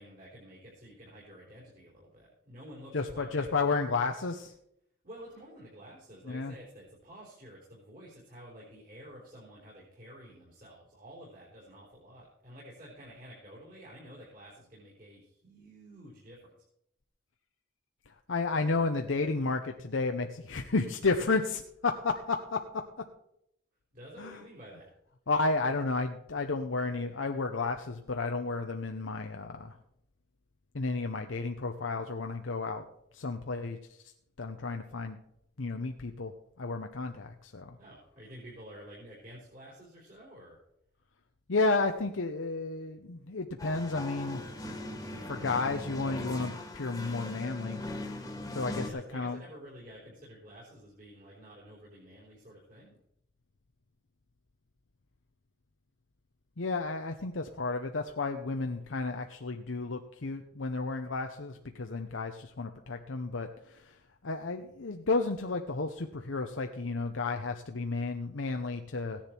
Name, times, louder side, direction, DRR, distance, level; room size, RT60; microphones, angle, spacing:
voice 1, 0.0-3.7 5.0-16.6 23.9-24.9 37.8-40.6 48.7-53.0, equal, 45° right, -5 dB, 4.0 m, -50 dB
voice 2, 2.9-4.5 6.3-6.5 18.1-23.0 24.2-24.4 25.3-29.7 30.7-32.8 33.1-33.8 34.4-35.2 35.6-36.3 36.6-37.8 41.5-44.5 45.2-47.8 48.5-49.4 56.6-64.0 64.2-69.2, left 3 dB, 90° left, 5 dB, 0.8 m, -32 dB
sound 1, 43.6-48.9, left 1 dB, 15° left, 1.7 m, -40 dB
16.0 x 10.0 x 4.5 m, 0.76 s
head